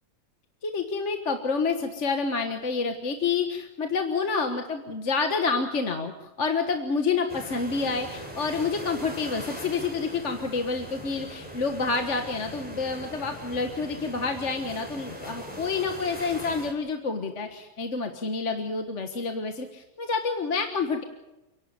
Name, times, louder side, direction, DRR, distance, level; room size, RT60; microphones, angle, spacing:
voice 1, 0.6-21.0, left 4 dB, 55° left, 5 dB, 1.8 m, -28 dB
sound 1, 7.3-16.7, equal, 5° right, 4.3 m, -40 dB
29.5 x 12.0 x 9.7 m, 0.96 s
omnidirectional pair, 1.5 m